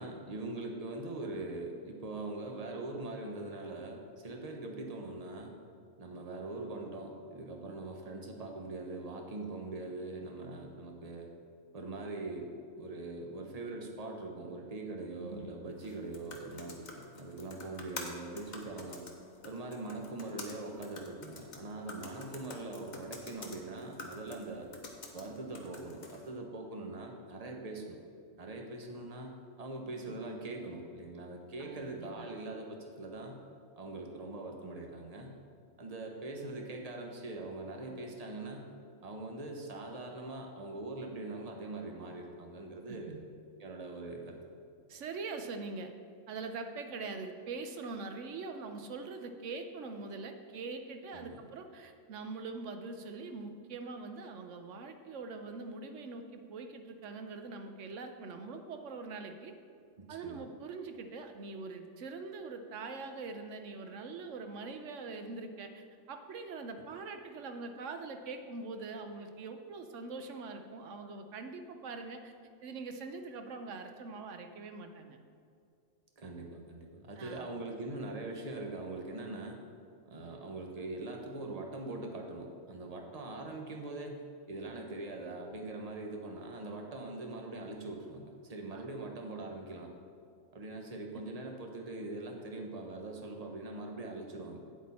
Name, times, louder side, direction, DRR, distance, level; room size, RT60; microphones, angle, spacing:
voice 1, 0.0-5.5 6.0-11.3 11.7-12.5 12.8-19.0 19.4-24.7 25.1-28.0 28.4-29.3 29.6-33.4 33.8-35.4 35.8-38.7 39.0-43.1 43.6-44.4 51.1-51.4 60.0-60.5 76.2-79.6 80.0-89.9 90.5-94.6, right 2 dB, 30° right, 2 dB, 1.0 m, -42 dB
voice 2, 15.2-15.5 31.6-32.3 42.9-43.2 44.9-45.9 46.3-59.5 60.1-72.3 72.6-75.2 77.2-77.5 88.7-88.8 91.1-91.2, right 4 dB, 70° right, 7 dB, 1.1 m, -43 dB
sound 1, 15.7-26.3, left 3 dB, 40° left, 1.0 m, -48 dB
8.6 x 8.3 x 4.2 m, 2.3 s
omnidirectional pair, 1.4 m